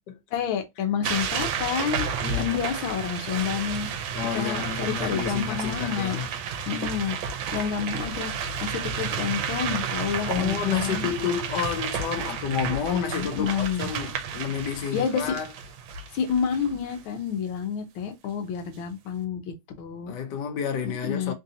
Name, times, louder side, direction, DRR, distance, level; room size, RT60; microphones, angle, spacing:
voice 1, 0.3-2.0 2.4-3.9 4.3-6.2 6.7-7.2 7.5-11.1 13.2-13.9 14.9-15.3 16.1-20.1 20.8-21.3, left 7 dB, 90° left, 1.6 m, -29 dB
sound 1, 1.0-17.0, right 6 dB, 80° right, 1.4 m, -31 dB
voice 2, 2.2-2.6 4.1-6.2 6.7-7.0 10.3-15.5 20.0-21.3, left 8 dB, 65° left, 1.3 m, -30 dB
3.8 x 2.7 x 2.6 m
omnidirectional pair, 2.1 m